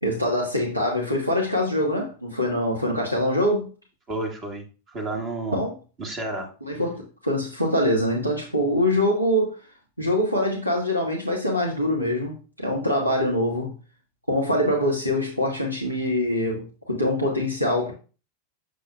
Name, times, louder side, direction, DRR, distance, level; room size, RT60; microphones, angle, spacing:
voice 1, 0.0-3.7 5.5-5.7 6.6-9.5 10.0-13.7 14.3-17.9, left 1 dB, 90° right, 1.3 m, -24 dB
voice 2, 4.1-5.6 6.0-6.5, right 2 dB, 30° right, 1.9 m, -31 dB
6.9 x 6.2 x 2.3 m
figure-of-eight pair, 90°, 0 cm